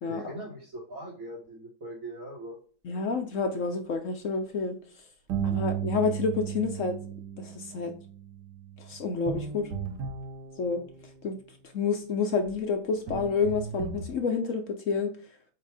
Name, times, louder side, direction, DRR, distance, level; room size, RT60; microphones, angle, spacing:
voice 1, 0.1-2.6, right 1 dB, 55° right, -3 dB, 1.8 m, -40 dB
voice 2, 2.8-4.8 5.4-7.0 7.4-7.9 8.8-9.7 10.6-10.8 11.2-11.4 11.7-15.1, left 4 dB, 60° left, 6 dB, 0.9 m, -29 dB
sound 1, 5.3-11.2 12.5-12.6 13.1-14.1, right 7 dB, 80° right, 1.3 m, -35 dB
7.5 x 2.7 x 4.7 m, 0.42 s
omnidirectional pair, 1.8 m